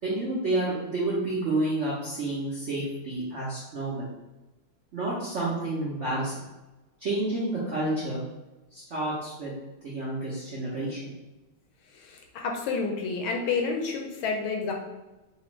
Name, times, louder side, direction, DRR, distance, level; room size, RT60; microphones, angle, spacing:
voice 1, 0.0-4.0 4.9-6.3 7.0-8.2 8.7-9.5 9.8-11.1, right 2 dB, 65° right, -7 dB, 0.7 m, -29 dB
voice 2, 11.9-14.7, left 4 dB, 80° left, 1 dB, 1.4 m, -29 dB
4.2 x 2.4 x 3.0 m, 1.1 s
omnidirectional pair, 2.3 m